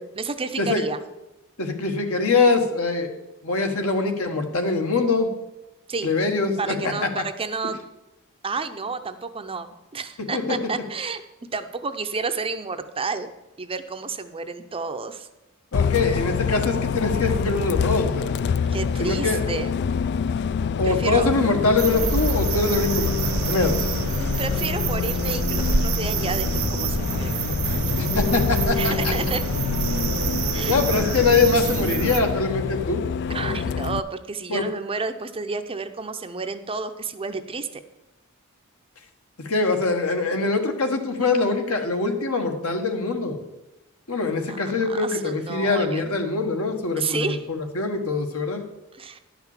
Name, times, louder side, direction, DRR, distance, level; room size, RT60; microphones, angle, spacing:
voice 1, 0.2-1.0 5.9-6.1 6.6-7.8 8.4-11.2 11.5-13.3 13.6-15.3 18.7-19.7 20.8-21.3 24.1-27.4 28.7-29.4 30.5-30.8 33.3-37.8 44.5-46.1 47.0-47.4 48.9-49.2, right 4 dB, 25° right, 9 dB, 0.6 m, -31 dB
voice 2, 1.6-3.1 3.4-5.3 6.0-7.2 10.3-10.6 15.7-18.3 19.0-19.4 20.8-23.9 27.9-29.1 30.7-33.0 34.5-34.7 39.4-43.4 44.1-48.6, left 3 dB, 70° left, 4 dB, 1.5 m, -23 dB
Bus, 15.7-34.0, left 6 dB, 50° left, 0.3 m, -26 dB
sound 1, 21.8-32.2, right 4 dB, 75° right, 1.2 m, -26 dB
11.0 x 5.9 x 7.2 m, 1.0 s
head